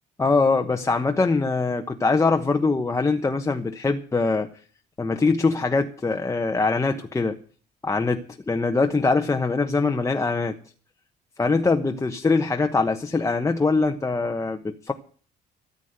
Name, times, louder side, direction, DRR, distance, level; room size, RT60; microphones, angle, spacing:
voice 1, 0.2-4.5 5.0-7.4 7.8-10.6 11.4-14.9, left 3 dB, 20° left, 1.1 m, -23 dB
14.0 x 8.3 x 8.0 m
cardioid pair, 110°, 17 cm